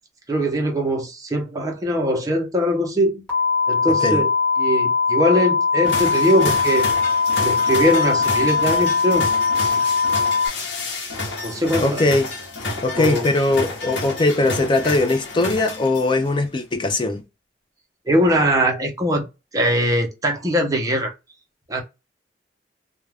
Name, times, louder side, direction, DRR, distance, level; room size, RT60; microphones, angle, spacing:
voice 1, 0.3-3.2 3.7-4.3 4.6-6.9 7.4-9.3 9.7-9.8 11.4-12.0 13.0-13.3 18.1-19.3 19.5-21.1 21.7-21.8, equal, 20° right, 0.7 m, -21 dB
sound 1, 3.3-10.5, left 5 dB, 5° left, 1.2 m, -20 dB
sound 2, 5.8-16.3, left 3 dB, 85° left, 0.8 m, -30 dB
voice 2, 11.8-12.3 12.8-17.2, left 2 dB, 25° left, 0.4 m, -20 dB
2.4 x 2.2 x 3.3 m
head